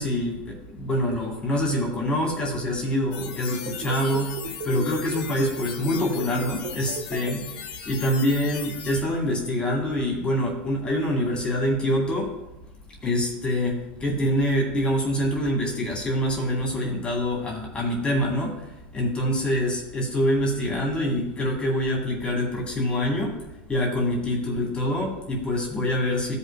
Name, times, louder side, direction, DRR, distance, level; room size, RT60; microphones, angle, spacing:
voice 1, 0.0-12.3 13.0-26.3, left 1 dB, 20° left, -2 dB, 2.4 m, -25 dB
sound 1, 3.1-9.0, left 8 dB, 75° left, 1.4 m, -38 dB
sound 2, 3.5-7.4, right 6 dB, 60° right, 0.8 m, -35 dB
15.5 x 5.6 x 2.4 m, 0.99 s
supercardioid pair, 115°, 5 cm